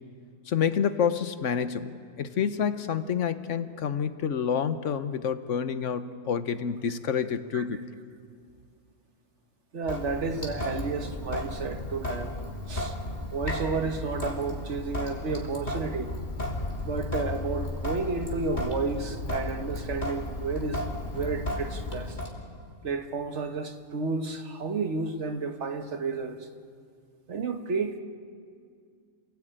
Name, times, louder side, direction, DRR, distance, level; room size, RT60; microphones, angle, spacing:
voice 1, 0.5-1.9 2.2-7.8, left 7 dB, 65° left, 1.3 m, -28 dB
voice 2, 9.7-12.3 12.7-13.0 13.3-16.2 16.8-20.8 21.1-22.2 22.8-26.5 27.3-28.0, right 4 dB, 60° right, 1.6 m, -31 dB
Sink (filling or washing) / Drip, 9.9-22.3, left 1 dB, 35° left, 3.1 m, -34 dB
28.0 x 18.0 x 8.9 m
omnidirectional pair, 1.4 m